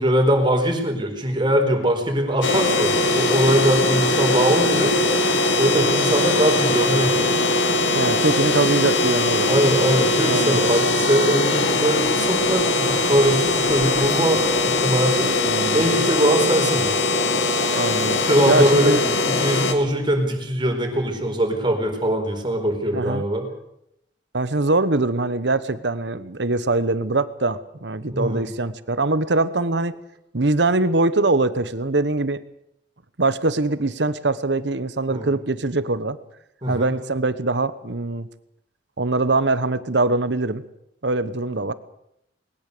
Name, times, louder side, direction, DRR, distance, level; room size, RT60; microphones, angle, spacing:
voice 1, 0.0-5.0 5.6-7.3 9.4-15.3 15.7-17.0 18.2-19.0 19.3-23.4 28.1-28.4 35.1-35.3 36.6-36.9, right 1 dB, 25° right, 3 dB, 4.4 m, -21 dB
sound 1, 2.4-19.7, left 2 dB, 90° left, 2.4 m, -21 dB
voice 2, 7.9-9.6 10.3-10.8 15.2-16.0 17.8-19.1 22.9-23.2 24.3-30.0 30.3-32.4 33.2-36.2 36.7-38.3 39.0-40.6 41.0-41.7, right 2 dB, 70° right, 14 dB, 1.1 m, -23 dB
20.5 x 19.5 x 6.8 m, 0.78 s
head